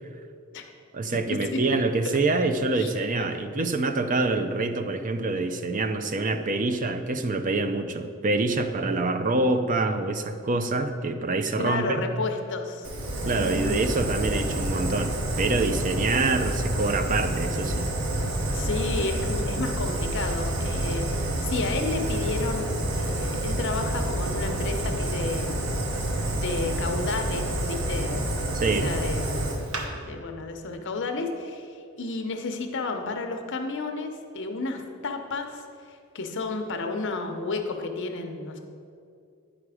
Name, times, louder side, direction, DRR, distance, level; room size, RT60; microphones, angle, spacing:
voice 1, 0.9-12.0 13.2-17.9 28.5-28.9, right 3 dB, 40° right, 8 dB, 0.5 m, -26 dB
voice 2, 11.6-12.9 13.3-14.0 18.5-25.7 26.3-38.6, left 3 dB, 60° left, 5 dB, 0.8 m, -32 dB
Fire, 12.8-29.8, right 1 dB, 85° right, 0.9 m, -28 dB
9.8 x 5.0 x 4.9 m, 2.4 s
head